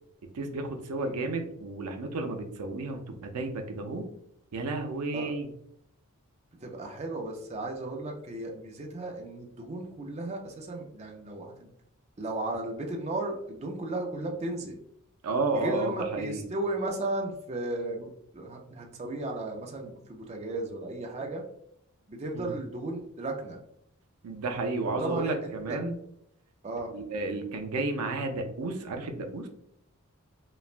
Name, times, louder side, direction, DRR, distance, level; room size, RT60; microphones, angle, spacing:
voice 1, 0.3-4.1 4.5-5.5 15.2-16.4 22.3-22.5 24.2-25.9 26.9-29.5, right 3 dB, 85° right, 5 dB, 0.5 m, -32 dB
voice 2, 6.6-11.5 12.2-14.8 15.5-21.4 22.1-23.6 25.0-25.8 26.6-26.9, right 2 dB, 30° right, 1 dB, 0.4 m, -35 dB
3.0 x 2.1 x 2.4 m, 0.73 s
head